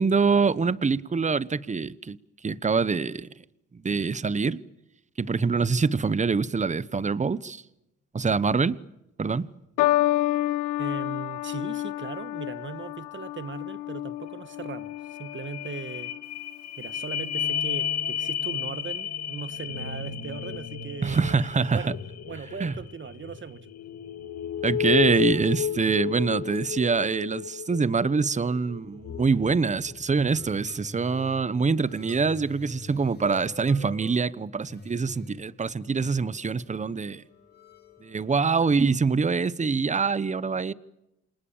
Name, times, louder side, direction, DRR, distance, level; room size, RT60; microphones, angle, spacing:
voice 1, 0.0-2.2 2.4-3.3 3.7-4.6 5.2-7.6 8.1-8.8 9.2-9.5 21.0-21.9 22.6-22.7 24.6-37.2 38.0-40.7, right 4 dB, 25° right, 1.1 m, -25 dB
sound 1, 9.8-16.3 17.1-17.6, left 15 dB, 85° left, 1.1 m, -29 dB
voice 2, 10.8-16.1 16.8-21.2 21.7-21.9 22.2-23.7, right 6 dB, 40° right, 1.4 m, -39 dB
sound 2, 14.3-14.4 14.6-30.6 31.1-31.2, left 9 dB, 60° left, 2.1 m, -32 dB
sound 3, 30.3-38.9, left 3 dB, 35° left, 7.2 m, -47 dB
29.0 x 26.5 x 7.3 m
cardioid pair, 90°, 30 cm